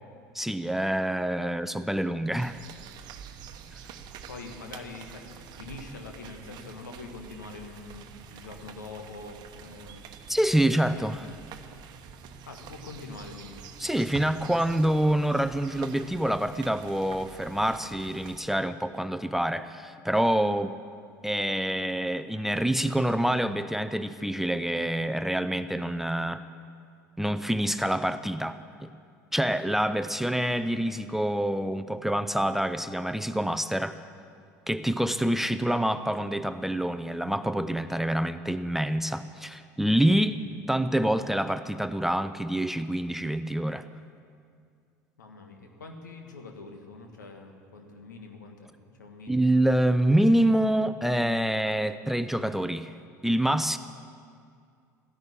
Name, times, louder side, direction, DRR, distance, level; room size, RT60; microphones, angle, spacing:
voice 1, 0.3-2.6 10.3-11.2 13.8-20.8 21.2-26.4 27.2-28.9 29.3-34.0 34.7-40.4 40.7-43.9 49.3-52.9 53.2-53.8, right 1 dB, 5° right, 11 dB, 0.5 m, -26 dB
sound 1, 2.4-18.4, right 7 dB, 50° right, 1.0 m, -46 dB
voice 2, 4.3-10.1 10.7-11.3 12.5-13.7 35.6-35.7 45.2-48.7 49.0-49.5, left 3 dB, 80° left, 4 dB, 1.6 m, -44 dB
14.5 x 10.5 x 8.6 m, 2.3 s
figure-of-eight pair, 70°, 10 cm